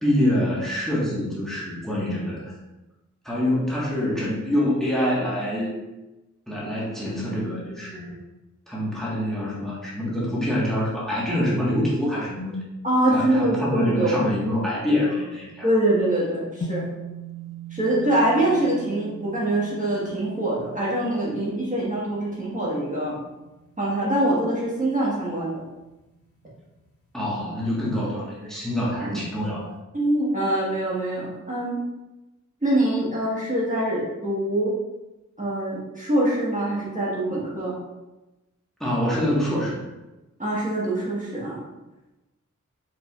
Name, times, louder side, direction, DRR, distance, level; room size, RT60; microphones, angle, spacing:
voice 1, 0.0-2.5 3.2-5.7 6.5-8.1 8.7-12.5 13.1-15.7 27.1-29.6 38.8-39.8, left 1 dB, ahead, -7 dB, 1.4 m, -25 dB
voice 2, 12.8-14.3 15.6-16.8 17.7-23.1 23.8-25.6 29.9-31.8 32.6-34.7 35.4-37.7 40.4-41.6, right 1 dB, 25° right, -6 dB, 1.4 m, -24 dB
sound 1, 16.6-25.1, right 2 dB, 45° left, 0.8 m, -40 dB
4.8 x 4.6 x 2.4 m, 1.0 s
wide cardioid pair, 75°, 31 cm